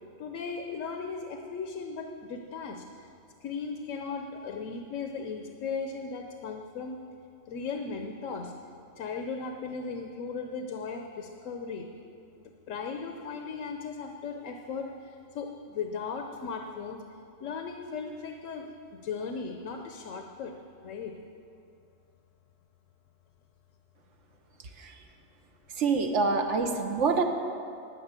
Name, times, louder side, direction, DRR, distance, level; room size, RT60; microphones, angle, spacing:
voice 1, 0.2-2.8 3.4-7.0 7.5-8.5 9.0-11.9 12.7-14.9 15.3-17.0 17.4-18.7 19.0-20.5 20.8-21.2, left 5 dB, 80° left, 4 dB, 1.1 m, -37 dB
voice 2, 25.8-27.2, right 4 dB, 70° right, 4 dB, 1.2 m, -26 dB
13.0 x 6.3 x 8.1 m, 2.5 s
omnidirectional pair, 1.3 m